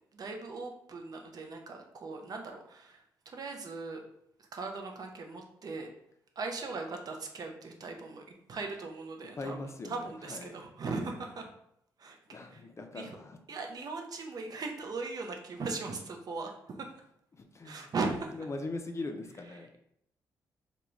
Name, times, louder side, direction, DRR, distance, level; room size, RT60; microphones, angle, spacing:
voice 1, 0.1-4.0 4.4-5.9 6.4-9.6 9.9-11.5 12.0-12.2 12.5-12.6 12.9-13.2 13.5-16.9 17.6-18.3, right 3 dB, 50° right, 3 dB, 0.5 m, -39 dB
voice 2, 9.4-10.6 12.3-13.4 17.3-17.9 18.3-19.7, left 2 dB, 35° left, 5 dB, 0.4 m, -41 dB
2.3 x 2.2 x 3.0 m, 0.72 s
supercardioid pair, 50°, 8 cm